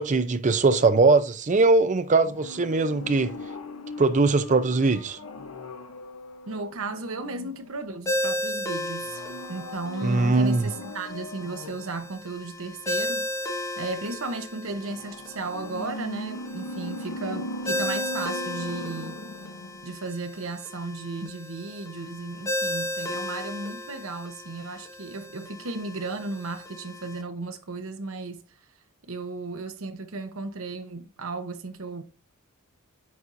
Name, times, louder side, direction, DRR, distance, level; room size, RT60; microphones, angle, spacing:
voice 1, 0.0-3.3 4.0-5.2 10.0-10.7, right 3 dB, 35° right, 0.5 m, -21 dB
sound 1, 2.2-7.9 9.0-12.0 14.8-20.0 20.3-20.4, left 1 dB, 65° left, 0.7 m, -39 dB
voice 2, 6.5-9.2 9.5-19.2 19.8-28.4 29.1-32.0, right 3 dB, 65° right, 0.9 m, -35 dB
Ringtone, 8.1-27.2, left 1 dB, 15° left, 0.7 m, -34 dB
9.5 x 4.2 x 2.6 m
head